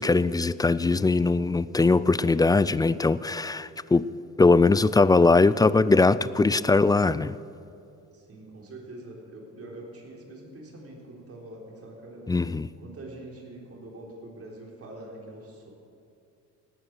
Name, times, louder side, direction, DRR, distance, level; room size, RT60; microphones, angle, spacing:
voice 1, 0.0-4.1 4.4-7.4 12.3-12.7, left 3 dB, 15° left, 0.3 m, -21 dB
voice 2, 8.1-12.3 12.8-15.7, right 1 dB, 50° right, 3.9 m, -44 dB
17.5 x 9.2 x 6.5 m
cardioid pair, 90°, 30 cm